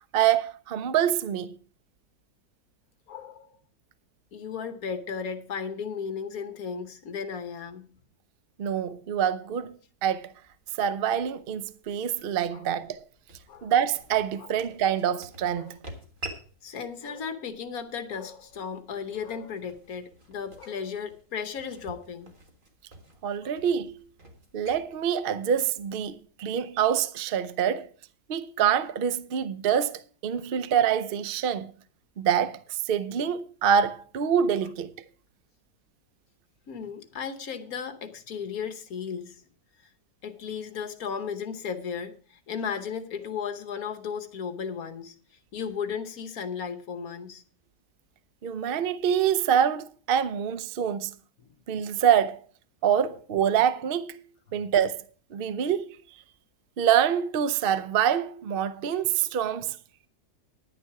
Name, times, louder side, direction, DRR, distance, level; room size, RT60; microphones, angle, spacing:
voice 1, 0.1-1.6 8.6-9.8 10.0-10.3 10.8-13.0 13.6-15.8 23.2-24.0 24.5-27.9 28.3-31.7 32.2-34.9 48.4-51.1 51.7-52.4 52.8-54.2 54.5-55.0 55.3-56.0 56.8-59.8, right 8 dB, 65° right, 0.5 m, -26 dB
voice 2, 3.1-3.5 4.3-7.9 12.5-12.7 13.5-13.7 14.4-14.5 15.5-15.7 16.6-22.3 23.4-23.5 36.7-39.4 39.8-39.9 40.2-45.2 45.5-47.4 51.4-51.5, left 6 dB, 60° left, 1.4 m, -35 dB
sound 1, 10.1-26.2, right 2 dB, 30° right, 1.8 m, -49 dB
10.5 x 9.2 x 4.7 m
omnidirectional pair, 1.8 m